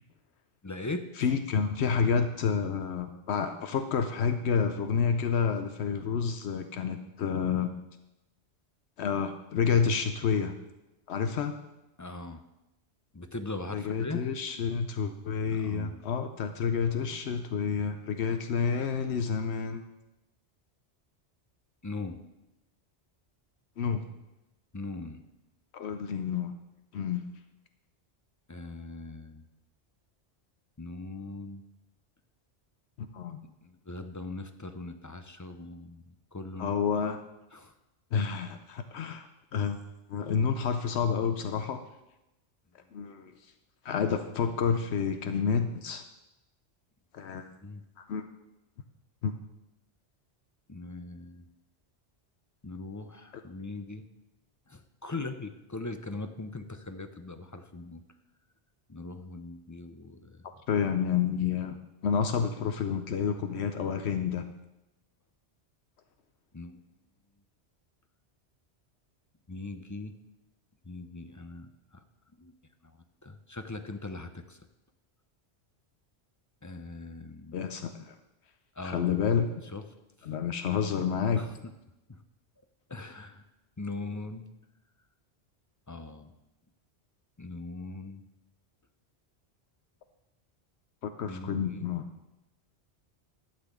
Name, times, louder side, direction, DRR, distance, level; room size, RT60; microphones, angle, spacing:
voice 1, 0.6-1.1 12.0-12.4 13.1-14.2 15.5-16.0 21.8-22.2 24.7-25.2 28.5-29.4 30.8-31.6 33.4-36.0 36.3-36.8 37.5-37.7 47.6-47.8 50.7-51.5 52.6-54.1 54.7-58.0 58.9-60.5 66.5-66.8 69.5-70.1 70.8-72.0 72.4-72.5 72.8-72.9 73.2-74.6 76.6-77.6 78.7-79.2 79.6-79.8 80.2-80.3 81.4-81.7 82.1-82.2 82.9-83.4 83.8-84.5 85.9-86.3 87.4-88.2 91.3-91.8, left 3 dB, 25° left, 8 dB, 0.5 m, -40 dB
voice 2, 1.2-7.7 9.0-10.5 11.1-11.5 13.7-19.8 23.8-24.0 25.7-26.5 26.9-27.2 33.1-33.4 36.6-37.2 38.1-39.3 39.5-39.8 40.1-41.8 42.9-43.3 43.8-46.0 47.1-47.5 48.1-48.2 49.2-49.3 60.7-61.8 62.0-64.5 77.5-78.1 78.8-79.5 80.2-81.4 91.0-92.0, left 6 dB, 75° left, 7 dB, 0.9 m, -29 dB
11.5 x 4.2 x 8.1 m, 0.94 s
omnidirectional pair, 1.1 m